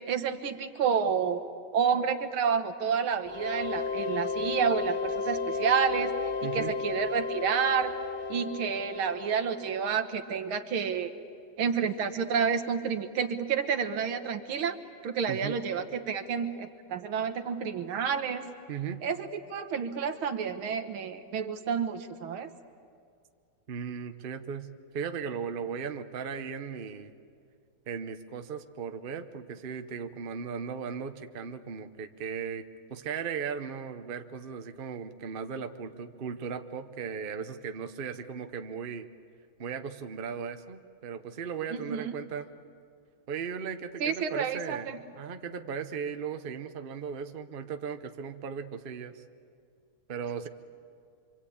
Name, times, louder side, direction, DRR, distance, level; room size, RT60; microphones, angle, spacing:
voice 1, 0.1-1.4 1.7-6.1 6.5-7.9 8.3-11.1 11.6-14.8 15.0-18.4 19.0-22.5 41.7-42.1 44.0-45.0, right 6 dB, 85° right, 7 dB, 2.1 m, -29 dB
sound 1, 3.3-9.9, left 4 dB, 85° left, 0.5 m, -33 dB
voice 2, 6.4-6.7 15.3-15.6 18.7-19.0 23.7-27.1 27.9-32.6 32.9-39.1 39.6-42.5 43.3-49.2 50.1-50.5, right 6 dB, 40° right, 7 dB, 0.8 m, -37 dB
26.5 x 25.5 x 8.7 m, 2.3 s
omnidirectional pair, 2.2 m